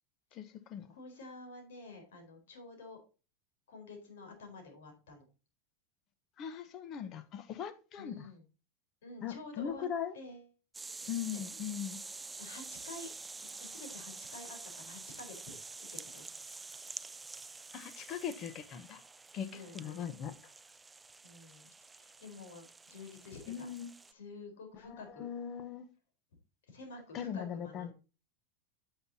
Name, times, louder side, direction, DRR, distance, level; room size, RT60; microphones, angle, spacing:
voice 1, 0.3-0.9 6.4-8.3 9.2-10.1 11.1-12.0 17.7-19.0 19.3-20.4 23.5-23.9 24.9-25.9 27.1-27.9, left 8 dB, 35° left, 1.1 m, -40 dB
voice 2, 0.9-3.0 3.7-5.3 8.0-8.4 9.0-10.5 11.3-11.4 11.9-13.1 13.4-16.3 19.5-20.1 21.2-23.7 24.1-25.3 26.6-27.9, left 3 dB, 90° left, 4.2 m, -50 dB
sound 1, 10.7-24.1, right 3 dB, 10° right, 0.3 m, -48 dB
9.5 x 7.9 x 2.8 m
supercardioid pair, 140°, 0 cm